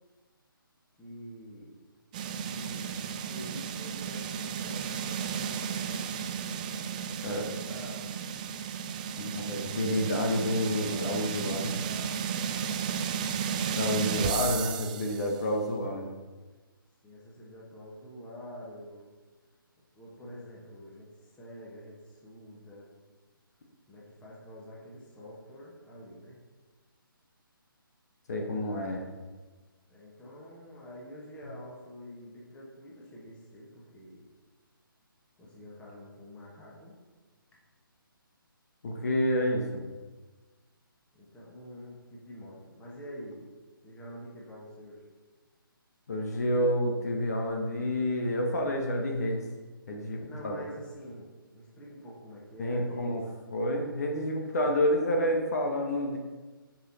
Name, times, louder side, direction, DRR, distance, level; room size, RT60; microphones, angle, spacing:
voice 1, 1.0-1.8 2.4-8.4 9.4-10.1 10.9-12.2 12.8-13.0 17.0-19.1 19.9-22.9 23.9-26.4 29.9-34.3 35.4-37.0 41.1-43.5 43.8-45.0 50.2-53.3, equal, 10° left, -5 dB, 1.9 m, -47 dB
sound 1, 2.1-15.4, right 7 dB, 20° right, 0.4 m, -34 dB
voice 2, 6.9-7.5 9.2-11.7 13.7-16.1 28.3-29.0 38.8-39.8 46.1-49.5 49.9-50.6 52.6-53.2 53.5-56.2, left 1 dB, 45° left, 1 dB, 1.6 m, -29 dB
12.0 x 5.9 x 4.4 m, 1.3 s
figure-of-eight pair, 140°, 12 cm